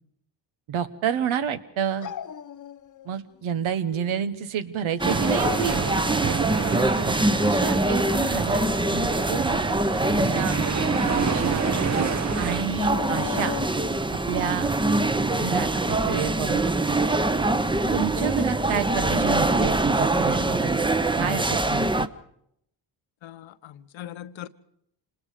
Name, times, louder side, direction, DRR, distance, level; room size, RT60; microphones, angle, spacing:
voice 1, 0.7-2.1 3.0-5.8 7.4-8.6 8.9-9.6 10.2-10.6 11.1-11.7 12.4-13.6 14.3-14.7 15.3-17.0 17.9-22.1, right 8 dB, 80° right, 1.4 m, -29 dB
Dog, 2.0-3.2 3.5-4.2 5.2-6.0 7.9-8.6 12.9-14.2, left 9 dB, 40° left, 0.8 m, -37 dB
sound 1, 5.0-22.1, right 2 dB, 10° right, 0.8 m, -24 dB
sound 2, 5.1-12.6, right 6 dB, 35° right, 0.9 m, -30 dB
voice 2, 23.2-24.5, left 12 dB, 75° left, 1.0 m, -40 dB
26.5 x 20.0 x 5.0 m
supercardioid pair, 65°, 47 cm